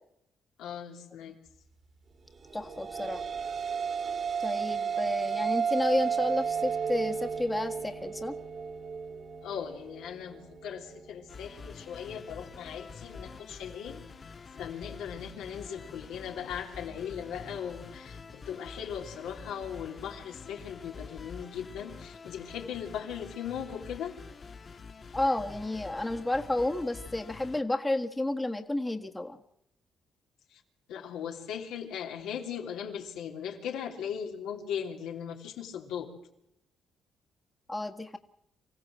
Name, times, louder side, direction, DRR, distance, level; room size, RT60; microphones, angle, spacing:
voice 1, 0.6-1.4 9.4-24.1 30.5-30.6 30.9-36.1, left 8 dB, 90° left, 1 dB, 3.3 m, -38 dB
voice 2, 2.5-3.2 4.4-8.4 25.1-29.4 37.7-38.2, left 1 dB, 15° left, 4 dB, 1.6 m, -31 dB
sound 1, 2.5-11.1, right 6 dB, 45° right, 2.9 m, -33 dB
sound 2, 11.3-27.6, left 5 dB, 40° left, 1.4 m, -47 dB
26.0 x 15.5 x 7.7 m, 0.80 s
cardioid pair, 90°, 0 cm